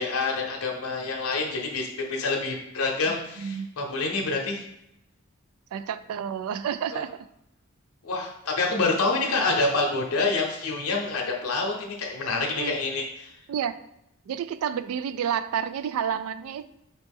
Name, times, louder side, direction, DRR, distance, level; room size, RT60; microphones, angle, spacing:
voice 1, 0.0-4.6 6.9-7.0 8.0-13.3, left 3 dB, 80° left, 0 dB, 0.7 m, -27 dB
voice 2, 3.0-3.7 5.7-7.3 12.6-12.7 13.5-13.7 14.3-16.7, right 8 dB, 85° right, 16 dB, 0.3 m, -30 dB
4.3 x 2.9 x 3.5 m, 0.80 s
head